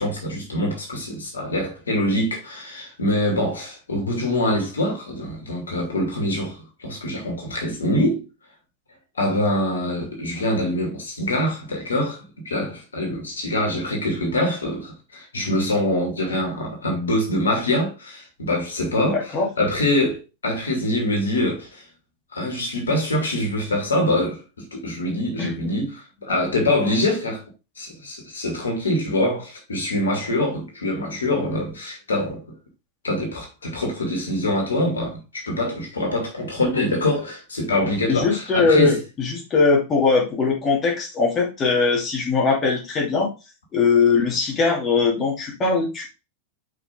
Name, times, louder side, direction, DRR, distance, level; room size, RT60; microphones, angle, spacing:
voice 1, 0.0-8.2 9.1-21.8 22.3-27.4 27.8-32.6 33.0-39.0, left 1 dB, 70° left, 2.6 m, -24 dB
voice 2, 19.1-19.5 25.4-25.5 38.1-43.3 43.7-46.1, left 4 dB, 25° left, 2.6 m, -20 dB
5.7 x 5.4 x 3.6 m
figure-of-eight pair, 90°, 0 cm